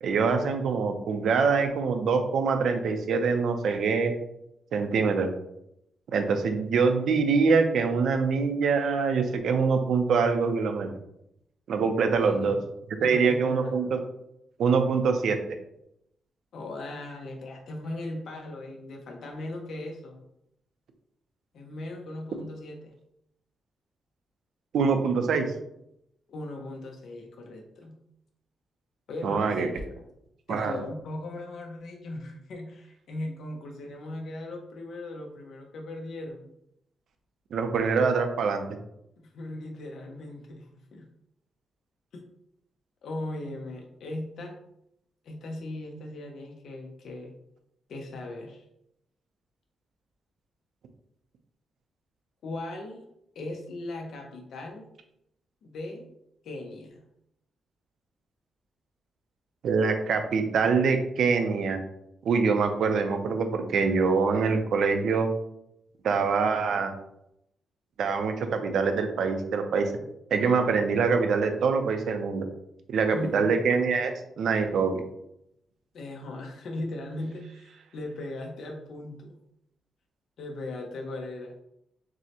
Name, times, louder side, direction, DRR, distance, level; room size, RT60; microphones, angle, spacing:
voice 1, 0.0-4.1 4.7-5.3 6.1-10.9 11.7-12.6 13.0-14.0 14.6-15.4 24.7-25.5 29.2-29.7 30.5-30.7 37.5-38.6 59.6-61.8 62.2-65.3 66.0-66.9 68.0-69.9 70.3-72.5 72.9-75.0, right 5 dB, 70° right, 6 dB, 0.5 m, -24 dB
voice 2, 12.2-12.6 13.0-13.9 16.5-20.2 21.5-22.9 26.3-28.0 29.1-30.0 30.5-36.5 39.2-41.1 42.1-42.2 43.0-44.6 45.2-47.3 47.9-48.7 52.4-53.0 53.3-54.9 55.6-56.1 56.4-57.0 73.1-73.6 75.9-79.4 80.4-81.5, left 2 dB, 70° left, 1 dB, 0.6 m, -38 dB
6.1 x 2.1 x 2.8 m, 0.79 s
wide cardioid pair, 145°, 0 cm